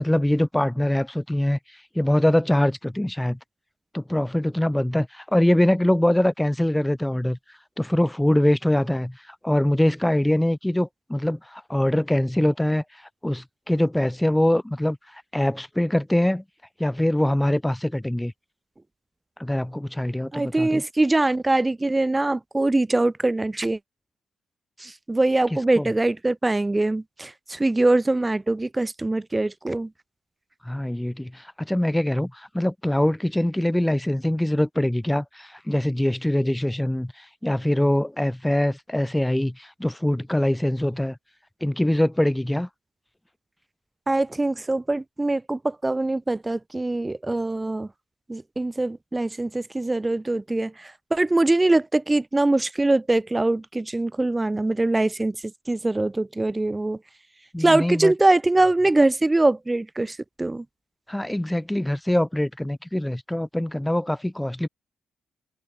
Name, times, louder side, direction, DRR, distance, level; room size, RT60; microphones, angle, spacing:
voice 1, 0.0-3.4 3.9-7.4 7.8-16.4 16.8-18.3 19.4-20.8 25.8-25.9 30.6-41.2 41.6-42.7 57.5-58.1 61.1-64.7, left 1 dB, 5° left, 7.6 m, -23 dB
voice 2, 20.3-23.8 24.8-29.9 44.1-47.9 48.3-55.3 55.7-57.0 57.6-60.6, right 2 dB, 15° right, 1.5 m, -23 dB
cardioid pair, 90°, 0 cm